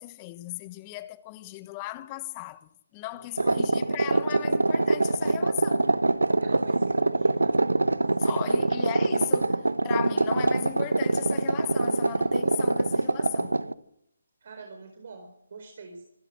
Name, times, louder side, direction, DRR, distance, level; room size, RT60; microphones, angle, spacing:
voice 1, 0.0-5.9 8.2-13.6, left 17 dB, 25° left, 1.0 m, -37 dB
voice 2, 3.1-3.6 6.4-7.6 8.3-8.5 14.4-16.0, right 4 dB, 50° right, 4.4 m, -44 dB
sound 1, 3.4-13.7, right 2 dB, 85° right, 1.1 m, -24 dB
25.5 x 13.0 x 7.9 m
figure-of-eight pair, 145°, 0 cm